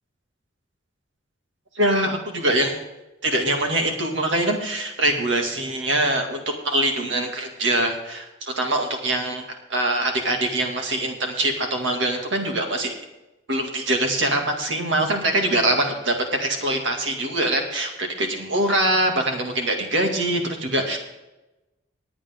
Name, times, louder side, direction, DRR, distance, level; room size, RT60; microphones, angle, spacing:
voice 1, 1.7-2.8 3.2-9.4 9.7-13.0 13.5-21.0, right 1 dB, 70° right, 3 dB, 2.4 m, -23 dB
20.0 x 8.7 x 3.7 m, 1.0 s
head